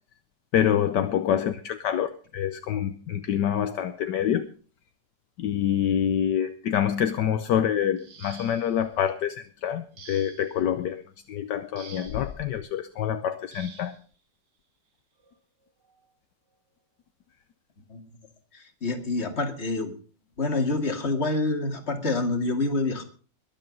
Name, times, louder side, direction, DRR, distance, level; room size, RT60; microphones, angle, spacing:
voice 1, 0.5-4.5 5.4-11.0 11.3-14.0, left 9 dB, 70° left, 10 dB, 1.4 m, -26 dB
sound 1, 8.0-8.9 10.0-10.6 11.8-12.3 13.5-14.0 15.2-15.3 15.8-16.1, right 6 dB, 70° right, 2.4 m, -48 dB
voice 2, 18.5-19.9 20.4-23.0, left 2 dB, 35° left, 5 dB, 2.5 m, -27 dB
22.0 x 7.8 x 5.3 m, 0.39 s
omnidirectional pair, 1.9 m